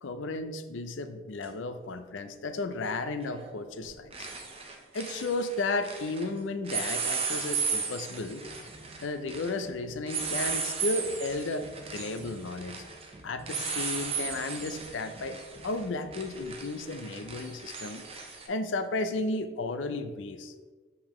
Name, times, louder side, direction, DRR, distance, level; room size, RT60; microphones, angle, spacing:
voice 1, 0.0-4.3 4.9-8.4 9.0-12.8 13.2-18.0 18.5-20.5, left 2 dB, 80° left, 10 dB, 0.5 m, -34 dB
sound 1, 1.4-1.5 3.3-3.6 3.8-6.3 6.6-18.5, right 5 dB, 30° right, 0.7 m, -36 dB
6.8 x 5.6 x 3.1 m, 1.4 s
head